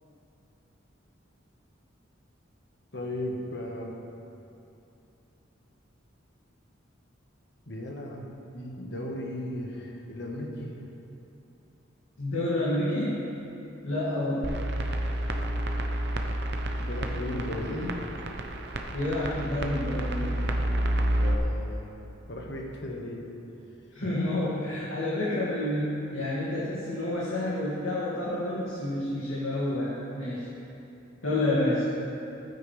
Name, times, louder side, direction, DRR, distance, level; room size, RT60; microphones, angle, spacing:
voice 1, 2.9-3.9 7.7-10.7 16.8-17.9 20.7-21.9 22.3-23.2, left 1 dB, 60° left, -1 dB, 1.4 m, -36 dB
voice 2, 12.2-13.2 13.8-14.5 18.9-20.4 23.9-30.5 31.2-31.9, left 1 dB, 90° left, -8 dB, 2.1 m, -29 dB
sound 1, 14.4-21.3, right 1 dB, 55° right, 0.7 m, -29 dB
15.0 x 9.2 x 3.3 m, 2.8 s
head